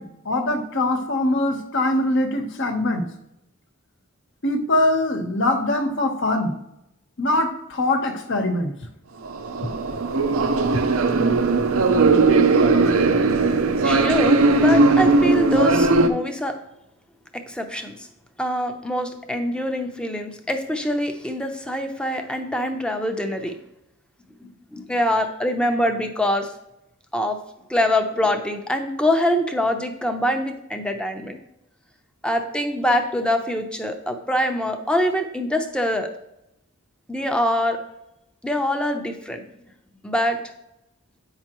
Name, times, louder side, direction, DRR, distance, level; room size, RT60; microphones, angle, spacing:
voice 1, 0.0-3.1 4.4-6.5 7.2-8.7, left 1 dB, 60° left, 5 dB, 1.0 m, -22 dB
sound 1, 9.2-16.1, right 3 dB, 70° right, 0.6 m, -18 dB
voice 2, 13.8-16.6 17.5-18.1 18.4-23.5 24.4-26.5 27.1-27.4 27.7-31.4 32.2-36.1 37.1-37.8 38.4-39.4 40.0-40.4, left 1 dB, 5° left, 5 dB, 0.6 m, -24 dB
8.9 x 5.7 x 3.0 m, 0.84 s
head